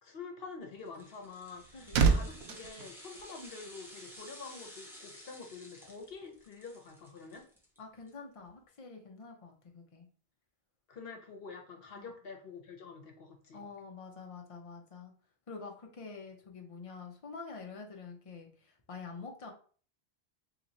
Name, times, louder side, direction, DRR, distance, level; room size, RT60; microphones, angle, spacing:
voice 1, 0.0-7.4 10.9-13.6, left 4 dB, 65° left, 3 dB, 1.1 m, -47 dB
sound 1, 0.8-8.1 8.4-8.5, equal, ahead, 0.9 m, -53 dB
sound 2, 1.2-3.9 4.1-4.4, right 5 dB, 85° right, 0.9 m, -30 dB
voice 2, 1.7-2.3 7.8-10.1 12.0-12.1 13.5-15.1 15.5-19.5, left 4 dB, 35° left, 2 dB, 0.7 m, -47 dB
3.0 x 2.9 x 3.9 m, 0.42 s
omnidirectional pair, 1.1 m